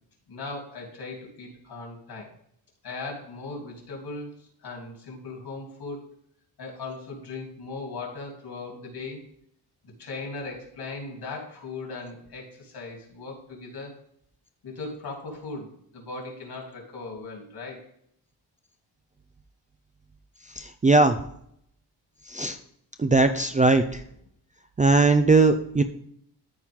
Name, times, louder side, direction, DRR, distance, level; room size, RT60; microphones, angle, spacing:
voice 1, 0.3-2.3 2.8-6.1 6.6-9.2 9.8-14.0 14.6-17.9, left 3 dB, 65° left, 0 dB, 3.1 m, -38 dB
voice 2, 20.6-21.2 22.3-22.6 23.0-24.0 24.8-25.8, right 3 dB, 20° right, 7 dB, 0.3 m, -19 dB
13.0 x 4.5 x 3.6 m, 0.69 s
wide cardioid pair, 165°, 42 cm